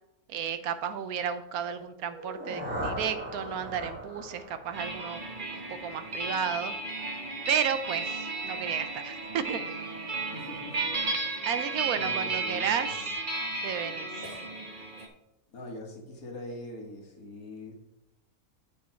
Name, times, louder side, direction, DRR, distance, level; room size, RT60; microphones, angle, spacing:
voice 1, 0.3-5.2 5.5-6.7 7.5-9.6 11.5-12.9 13.6-14.2, right 8 dB, 80° right, 11 dB, 1.2 m, -32 dB
sound 1, 2.0-6.0, equal, 10° right, 1.4 m, -39 dB
sound 2, 4.7-15.1, right 3 dB, 35° right, 1.1 m, -34 dB
voice 2, 10.2-11.1 11.5-13.1 15.5-17.7, left 2 dB, 70° left, 2 dB, 2.0 m, -43 dB
8.5 x 6.1 x 4.4 m, 0.90 s
omnidirectional pair, 1.6 m